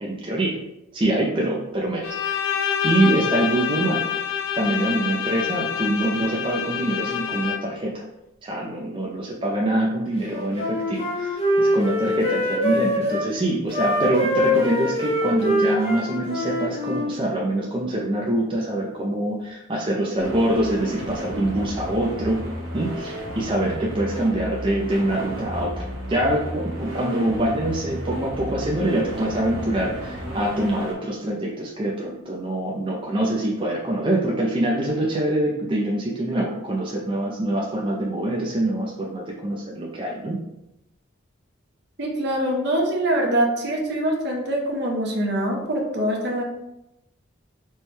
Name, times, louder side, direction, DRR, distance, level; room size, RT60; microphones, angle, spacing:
voice 1, 0.0-0.6 0.9-2.4 2.8-4.0 4.6-8.0 8.4-22.4 22.7-40.4, right 1 dB, 25° right, -3 dB, 0.4 m, -24 dB
Bowed string instrument, 2.0-7.9, left 8 dB, 75° left, 0.4 m, -27 dB
Wind instrument woodwind instrument, 10.3-13.3 13.7-17.1, left 1 dB, 30° left, 0.7 m, -24 dB
sound 1, 20.2-30.9, equal, 80° right, 1.0 m, -33 dB
voice 2, 42.0-46.4, right 1 dB, 55° right, 0 dB, 0.7 m, -24 dB
4.3 x 2.2 x 3.1 m, 0.88 s
head